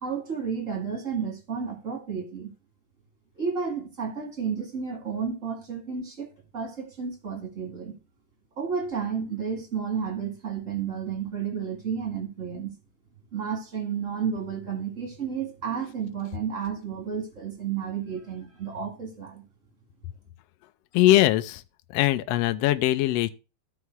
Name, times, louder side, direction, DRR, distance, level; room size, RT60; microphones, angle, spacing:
voice 1, 0.0-2.5 3.4-6.3 6.5-8.0 8.6-12.8 13.3-19.4, right 6 dB, 25° right, 2.0 m, -32 dB
voice 2, 20.9-21.6 21.9-23.3, left 15 dB, 85° left, 1.4 m, -21 dB
14.0 x 4.7 x 4.6 m
omnidirectional pair, 3.7 m